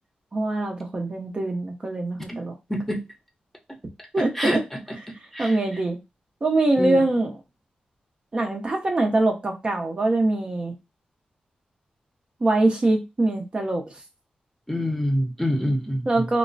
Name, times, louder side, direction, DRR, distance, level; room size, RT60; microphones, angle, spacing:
voice 1, 0.3-2.5 4.1-4.6 5.4-6.0 6.4-7.4 8.3-10.7 12.4-13.8 16.1-16.4, right 2 dB, 35° right, 0.5 m, -23 dB
voice 2, 2.7-3.0 4.4-4.6 5.3-5.5 6.8-7.0 14.7-16.1, equal, 10° left, 0.7 m, -25 dB
2.9 x 2.0 x 2.6 m
cardioid pair, 75°, 3 cm